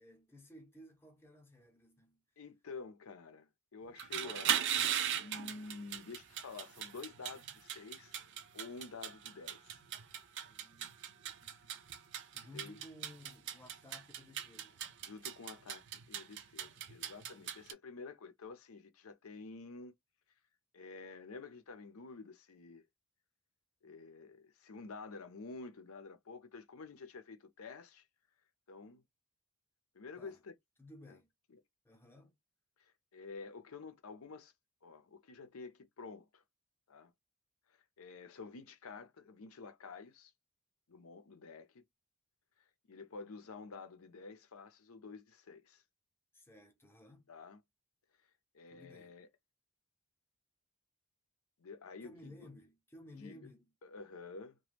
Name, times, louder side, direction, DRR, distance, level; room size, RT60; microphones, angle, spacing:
voice 1, 0.0-2.2 10.4-11.1 11.4-11.7 12.3-14.9 30.2-30.4 30.8-31.3 31.8-32.3 46.3-47.3 48.7-49.1 52.0-53.6, left 1 dB, 10° left, 0.7 m, -56 dB
voice 2, 2.4-9.8 12.5-12.8 15.0-19.9 20.7-22.8 23.8-28.1 28.7-29.0 29.9-30.5 31.1-31.2 31.5-31.6 32.8-34.5 34.8-36.4 36.9-37.1 37.7-40.3 40.9-41.8 42.6-45.8 47.3-47.6 48.5-49.3 51.6-52.5 53.2-53.5 53.8-54.6, left 4 dB, 70° left, 0.6 m, -50 dB
sound 1, 3.9-17.7, right 9 dB, 55° right, 0.5 m, -39 dB
2.9 x 2.2 x 3.3 m
head